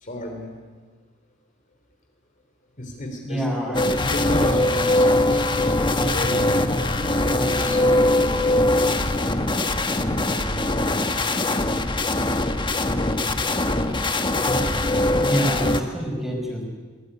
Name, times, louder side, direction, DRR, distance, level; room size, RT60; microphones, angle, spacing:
voice 1, 0.0-0.6 2.8-3.6 4.1-6.7 7.2-9.1 9.9-11.3, equal, 40° left, 3 dB, 3.6 m, -34 dB
voice 2, 3.2-3.9 15.2-16.6, equal, ahead, 0 dB, 5.5 m, -26 dB
sound 1, 3.7-15.8, left 1 dB, 25° left, 1.3 m, -21 dB
22.5 x 18.5 x 9.8 m, 1.5 s
head